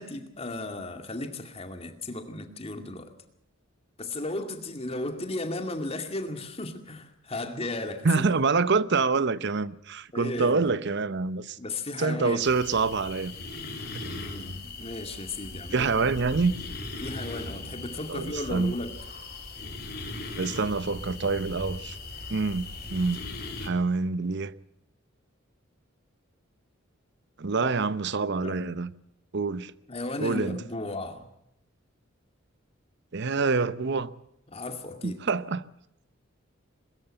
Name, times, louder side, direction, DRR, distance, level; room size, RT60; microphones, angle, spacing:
voice 1, 0.0-3.1 4.0-8.3 10.1-10.7 11.6-12.4 14.2-16.2 17.0-19.0 27.6-27.7 28.4-28.6 29.9-31.3 34.5-35.2, left 2 dB, 30° left, 2.3 m, -35 dB
voice 2, 8.0-11.6 12.0-13.3 13.9-14.2 15.7-16.5 18.1-18.7 20.4-22.0 22.3-23.2 23.6-24.5 27.4-28.9 29.3-29.7 30.2-30.6 33.1-34.1 35.0-35.6, right 4 dB, 60° right, 0.8 m, -26 dB
sound 1, 12.4-23.7, left 2 dB, 50° left, 3.6 m, -39 dB
22.0 x 14.0 x 9.0 m
head